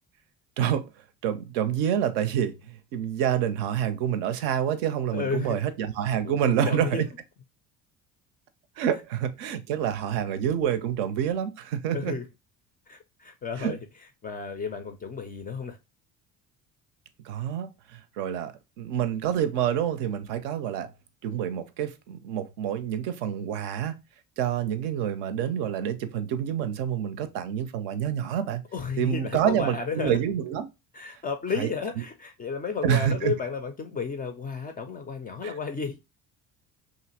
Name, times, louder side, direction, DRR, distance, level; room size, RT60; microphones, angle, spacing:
voice 1, 0.6-0.9 1.2-7.1 8.8-12.2 13.6-13.7 17.2-20.9 21.2-24.0 24.4-28.6 29.0-30.7 31.6-31.7 32.8-33.3 35.4-35.5, right 9 dB, 60° right, 0.5 m, -27 dB
voice 2, 5.1-5.6 6.2-7.0 11.9-12.2 12.9-13.8 14.2-15.8 28.7-30.2 30.9-36.0, left 5 dB, 20° left, 0.4 m, -32 dB
2.7 x 2.4 x 2.8 m
figure-of-eight pair, 50°, 46 cm